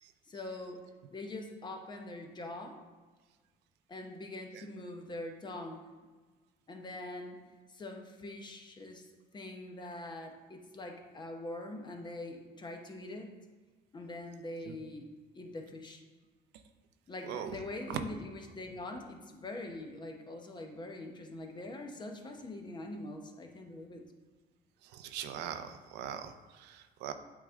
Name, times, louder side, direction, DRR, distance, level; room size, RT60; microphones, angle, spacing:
voice 1, 0.3-2.8 3.9-6.0 6.7-7.4 7.7-13.4 13.9-16.0 17.1-24.0, left 2 dB, 25° left, 3 dB, 0.9 m, -43 dB
voice 2, 17.2-17.6 17.9-18.1 24.8-27.1, right 9 dB, 85° right, 9 dB, 0.6 m, -41 dB
8.5 x 3.6 x 3.7 m, 1.4 s
cardioid pair, 110°, 17 cm